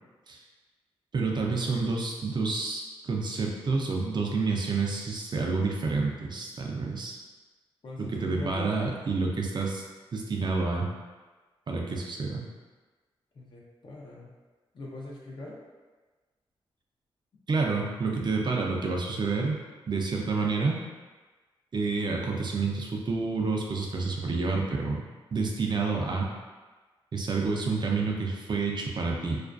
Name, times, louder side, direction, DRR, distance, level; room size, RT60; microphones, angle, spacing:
voice 1, 1.1-7.2 8.0-9.8 10.1-10.9 11.7-12.5 17.5-20.8 21.7-26.3 27.1-29.4, right 4 dB, 50° right, 0 dB, 0.5 m, -29 dB
voice 2, 7.8-8.7 11.9-12.0 13.3-14.3 14.7-15.6, left 1 dB, 50° left, -4 dB, 0.6 m, -41 dB
2.4 x 2.2 x 2.4 m, 1.3 s
cardioid pair, 55°, 10 cm